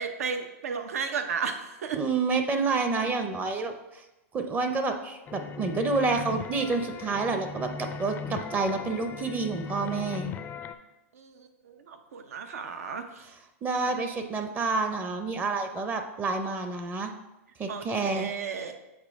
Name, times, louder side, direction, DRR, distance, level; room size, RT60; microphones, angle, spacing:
voice 1, 0.0-2.0 11.1-13.3 13.8-14.0 17.7-18.8, right 6 dB, 80° right, 7 dB, 0.7 m, -34 dB
voice 2, 1.9-4.0 4.3-10.3 13.6-17.1 17.6-18.3, right 3 dB, 20° right, 6 dB, 0.6 m, -29 dB
sound 1, 5.3-10.7, left 5 dB, 25° left, 0.4 m, -38 dB
7.3 x 4.1 x 3.6 m, 0.97 s
hypercardioid pair, 125°, 8 cm